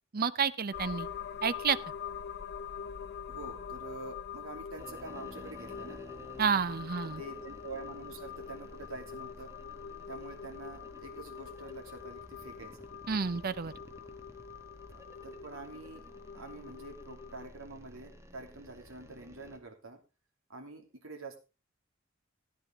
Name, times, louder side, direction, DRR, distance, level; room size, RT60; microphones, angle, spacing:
voice 1, 0.1-1.1 1.4-1.8 6.4-7.2 13.1-13.7, right 6 dB, 45° right, 16 dB, 0.6 m, -30 dB
sound 1, 0.7-17.5, left 7 dB, 50° left, 0.7 m, -44 dB
voice 2, 3.3-6.0 7.0-9.5 10.1-12.9 14.9-16.1 16.3-20.0 20.5-21.4, right 3 dB, 75° right, 3 dB, 2.8 m, -46 dB
sound 2, 4.8-19.6, equal, 15° right, 1.5 m, -53 dB
14.0 x 10.5 x 3.6 m, 0.30 s
head